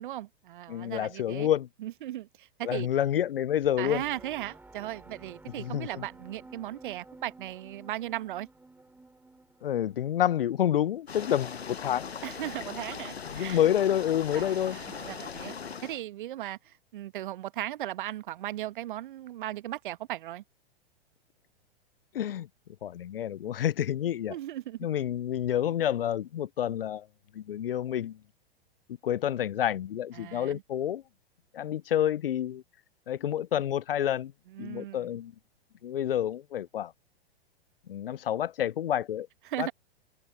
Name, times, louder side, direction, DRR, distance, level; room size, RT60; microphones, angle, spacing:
voice 1, 0.0-1.5 1.8-2.9 3.8-8.5 12.2-13.6 14.3-15.5 15.8-20.4 24.3-24.8 30.1-30.6 34.5-35.0 39.5-39.7, right 14 dB, 55° right, 1.2 m, -37 dB
voice 2, 0.7-1.7 2.6-4.0 5.6-6.0 9.6-12.1 13.3-14.8 22.1-22.5 22.8-24.4 24.8-27.1 27.3-28.2 29.0-31.0 31.5-32.6 33.1-34.3 34.6-35.3 35.8-36.9 37.9-39.3 39.6-39.7, left 10 dB, 65° left, 0.6 m, -28 dB
sound 1, 3.6-11.2, right 2 dB, 5° right, 7.6 m, -53 dB
sound 2, 11.1-16.0, left 6 dB, 80° left, 1.0 m, -40 dB
figure-of-eight pair, 100°, 31 cm